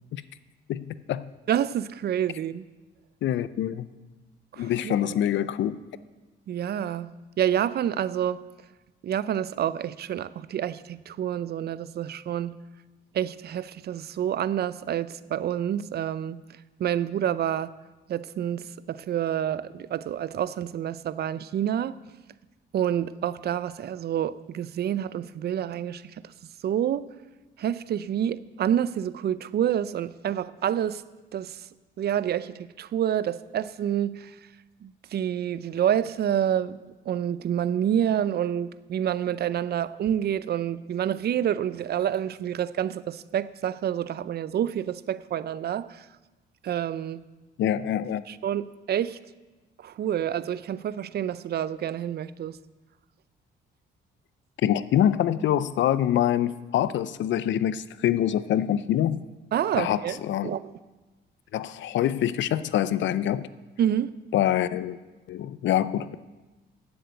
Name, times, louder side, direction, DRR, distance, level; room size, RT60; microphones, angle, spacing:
voice 1, 0.7-1.3 3.2-3.9 4.6-5.9 47.6-48.2 54.6-59.2 59.8-60.5 61.5-63.5 64.3-65.0 65.3-66.2, left 11 dB, 70° left, 0.5 m, -25 dB
voice 2, 1.5-2.6 4.5-5.1 6.5-7.1 7.4-8.4 9.0-12.6 13.1-16.4 16.8-17.7 18.1-21.9 22.7-26.3 26.6-27.1 27.6-31.0 31.3-31.7 32.0-34.4 34.8-36.8 37.1-46.1 46.6-47.2 48.3-49.2 49.8-52.6 59.5-60.7 63.8-64.1, right 10 dB, 55° right, 0.5 m, -28 dB
9.5 x 7.9 x 7.8 m
cardioid pair, 90°, 20 cm